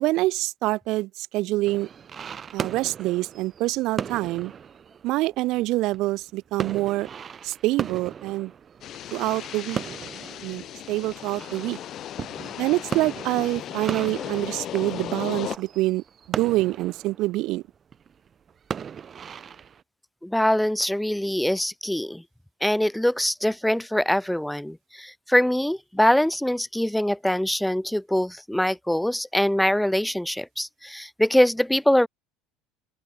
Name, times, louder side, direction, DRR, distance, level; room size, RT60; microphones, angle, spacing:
voice 1, 0.0-1.9 2.5-4.5 5.0-7.1 7.4-8.5 9.1-9.8 10.4-11.8 12.6-17.6, right 19 dB, 60° right, 0.3 m, -26 dB
sound 1, 1.6-19.8, right 7 dB, 30° right, 1.9 m, -37 dB
sound 2, 8.8-15.6, left 11 dB, 45° left, 4.8 m, -36 dB
voice 2, 20.2-22.2 22.6-32.1, left 1 dB, 5° left, 0.6 m, -23 dB
open air
supercardioid pair, 120°, 0 cm